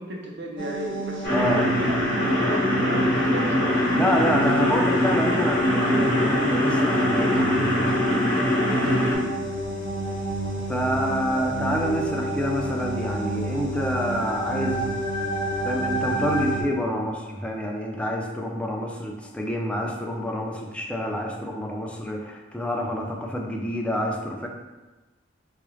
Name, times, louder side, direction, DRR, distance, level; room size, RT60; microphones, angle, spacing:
voice 1, 0.0-3.8 8.7-9.1, right 1 dB, 65° right, 0 dB, 0.6 m, -34 dB
sound 1, 0.6-16.6, right 2 dB, 25° left, 0.8 m, -30 dB
sound 2, 1.2-9.1, left 1 dB, 50° left, 0.9 m, -22 dB
voice 2, 1.3-1.7 3.9-7.9 9.1-9.2 10.7-15.0 15.6-24.5, equal, 5° left, 0 dB, 0.3 m, -27 dB
3.9 x 2.4 x 3.1 m, 1.2 s
head